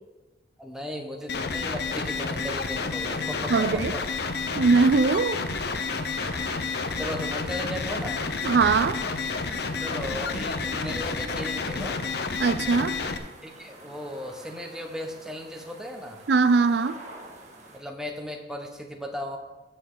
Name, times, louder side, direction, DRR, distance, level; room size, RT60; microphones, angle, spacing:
voice 1, 0.6-4.0 6.7-8.2 9.8-12.0 13.4-16.2 17.7-19.4, left 1 dB, 5° right, 2 dB, 1.2 m, -36 dB
sound 1, 1.3-13.2, left 4 dB, 65° left, 0.8 m, -30 dB
sound 2, 1.9-17.8, right 2 dB, 40° right, 1.9 m, -47 dB
voice 2, 3.5-3.9 4.6-5.5 8.4-9.0 12.4-13.0 16.3-17.0, right 4 dB, 70° right, 12 dB, 0.4 m, -21 dB
15.5 x 6.8 x 3.9 m, 1.1 s
head